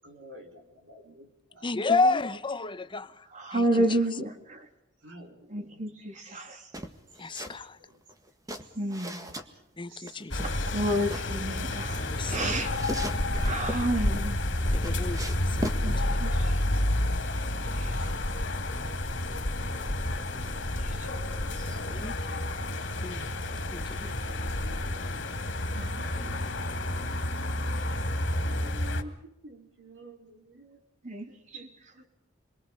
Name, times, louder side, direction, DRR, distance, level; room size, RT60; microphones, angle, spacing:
voice 1, 0.0-1.9 5.0-8.0 8.5-8.6 9.1-10.8 11.9-12.3 17.2-18.5 18.8-19.6 20.8-25.3 26.0-26.8 27.2-27.3 27.9-30.8 31.3-32.1, right 1 dB, 80° right, 4.7 m, -53 dB
voice 2, 1.6-3.1 7.2-7.7 9.8-10.4 12.0-12.5 14.8-15.4 21.9-22.1 23.0-23.3 23.7-23.8, left 3 dB, 25° left, 0.8 m, -29 dB
voice 3, 3.3-4.6 5.5-6.6 8.7-9.2 10.4-12.7 13.3-14.4 15.8-16.5 17.7-18.0 20.8-21.1 21.5-21.8 25.7-26.4 31.0-31.7, right 1 dB, 40° right, 2.9 m, -31 dB
sound 1, 6.7-7.6 7.9-9.5 10.1-11.3 12.0-13.9 14.4-15.8, equal, 20° right, 1.9 m, -38 dB
sound 2, 10.3-29.0, left 1 dB, 70° left, 2.5 m, -30 dB
28.5 x 22.5 x 5.4 m
head